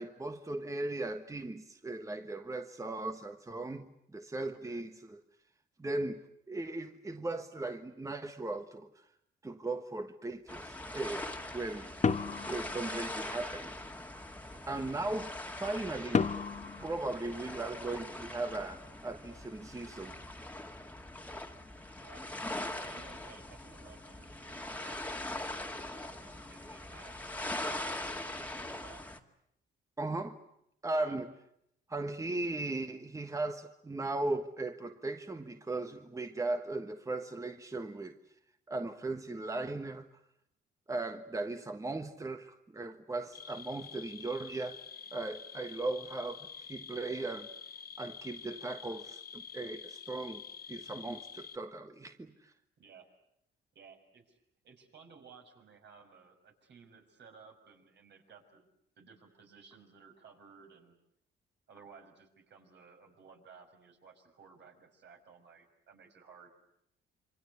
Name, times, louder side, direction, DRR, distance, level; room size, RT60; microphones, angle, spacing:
voice 1, 0.0-5.2 5.8-6.2 6.5-9.0 9.4-12.1 12.5-13.7 14.7-16.3 16.8-20.2 30.0-30.4 30.8-31.3 31.9-38.2 38.7-40.1 40.9-44.8 45.1-47.5 48.0-50.4 50.7-52.5, right 2 dB, 15° right, 1.4 m, -37 dB
voice 2, 4.5-4.8 14.5-14.9 21.9-22.3 22.7-25.0 25.9-27.2 27.5-29.1 30.9-31.2 52.8-53.1 53.7-54.4 54.6-58.7 59.0-60.9 61.7-66.5, right 5 dB, 60° right, 6.2 m, -57 dB
sound 1, 10.5-29.2, left 1 dB, 10° left, 2.1 m, -42 dB
sound 2, 12.0-13.5 16.1-18.0, left 5 dB, 35° left, 1.2 m, -33 dB
sound 3, 43.3-51.6, left 7 dB, 50° left, 1.9 m, -48 dB
27.0 x 25.5 x 8.4 m
cardioid pair, 90°, 20 cm